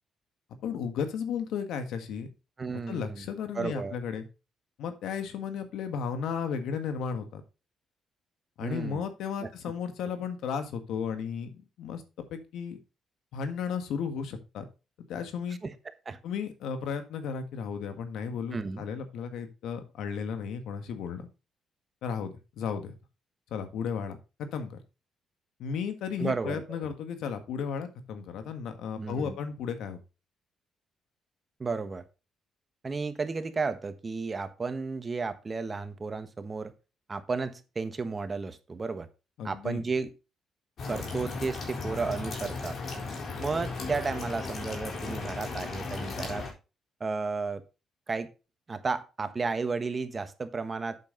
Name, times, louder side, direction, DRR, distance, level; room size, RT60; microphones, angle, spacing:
voice 1, 0.6-2.3 2.9-4.2 4.8-7.4 8.6-12.8 13.3-14.6 15.0-15.6 16.2-21.3 22.0-23.0 23.5-24.8 25.6-30.0 39.4-39.8, left 6 dB, 80° left, 8 dB, 1.7 m, -34 dB
voice 2, 2.6-3.2 3.5-3.9 8.6-9.0 9.4-9.5 15.6-15.7 16.0-16.2 18.5-18.8 26.2-26.9 29.0-29.4 31.6-32.0 32.8-36.7 37.1-39.1 39.4-40.1 40.9-42.8 43.4-46.5 47.0-47.6 48.1-48.3 48.7-51.0, right 4 dB, 30° right, 10 dB, 1.2 m, -33 dB
sound 1, 40.8-46.5, left 3 dB, 60° left, 3.9 m, -36 dB
8.4 x 7.1 x 3.9 m, 0.30 s
cardioid pair, 90°, 0 cm